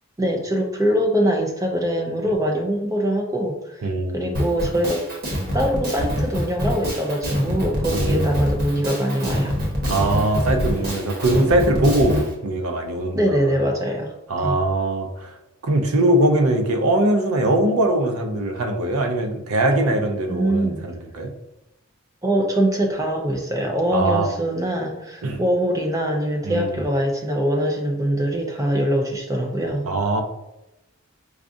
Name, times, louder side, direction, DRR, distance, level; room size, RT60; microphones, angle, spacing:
voice 1, 0.2-3.9 4.1-5.1 5.5-9.5 13.1-14.1 14.4-14.6 19.8-20.0 20.3-20.8 22.2-29.9, equal, 15° right, 2 dB, 0.3 m, -23 dB
voice 2, 3.8-4.4 7.9-8.3 9.9-13.6 14.3-15.4 15.6-21.3 23.9-24.3 25.2-25.4 26.4-26.8 29.8-30.2, right 1 dB, 85° right, 5 dB, 0.6 m, -21 dB
Drum kit, 4.3-12.3, equal, 50° right, 1.0 m, -25 dB
4.8 x 2.3 x 2.5 m, 0.92 s
head